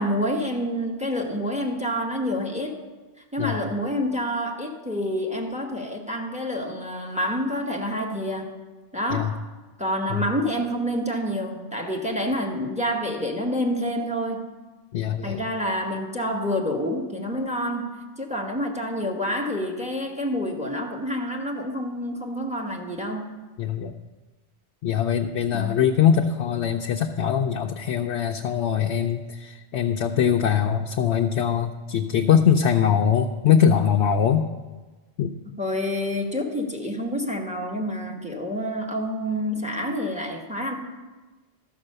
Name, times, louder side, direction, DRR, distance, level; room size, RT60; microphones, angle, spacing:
voice 1, 0.0-2.8 3.3-8.5 8.9-9.4 9.8-14.5 15.2-23.3 25.5-25.8 35.6-40.8, equal, 5° right, 1 dB, 1.2 m, -28 dB
voice 2, 14.9-15.4 23.6-23.9 24.8-34.5 35.2-35.3, left 8 dB, 80° left, 3 dB, 0.9 m, -22 dB
13.0 x 5.8 x 6.6 m, 1.2 s
omnidirectional pair, 1.1 m